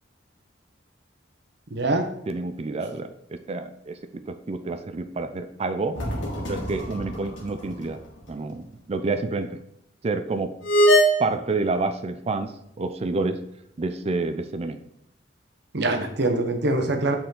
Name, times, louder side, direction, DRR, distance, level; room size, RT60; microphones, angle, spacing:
voice 1, 1.7-2.1 15.7-17.2, right 2 dB, 65° right, 6 dB, 0.9 m, -24 dB
voice 2, 2.3-6.0 6.4-8.0 8.3-9.6 10.0-10.6 11.2-13.4 13.8-14.8, right 3 dB, 35° right, 10 dB, 0.4 m, -29 dB
sound 1, 5.9-7.6 7.9-8.0 10.6-11.1, equal, 90° left, 1.8 m, -21 dB
7.9 x 4.3 x 3.8 m, 0.76 s
head